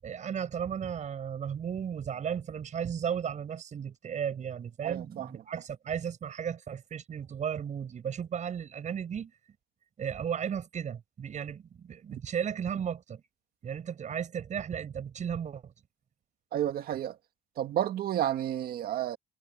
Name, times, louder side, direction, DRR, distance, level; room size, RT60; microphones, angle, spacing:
voice 1, 0.0-9.3 10.0-13.2 13.6-15.7, right 8 dB, 45° right, 6.8 m, -35 dB
voice 2, 4.8-5.3 16.5-17.2 17.6-19.2, right 11 dB, 65° right, 1.9 m, -31 dB
cardioid pair, 110°, 17 cm